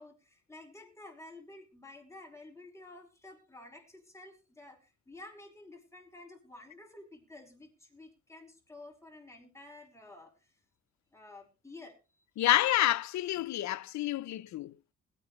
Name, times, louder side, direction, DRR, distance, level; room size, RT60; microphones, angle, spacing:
voice 1, 0.0-10.5 11.1-12.0, left 2 dB, 10° left, 4.9 m, -51 dB
voice 2, 12.4-14.7, left 14 dB, 65° left, 0.7 m, -28 dB
21.0 x 9.2 x 3.2 m
cardioid pair, 90°, 30 cm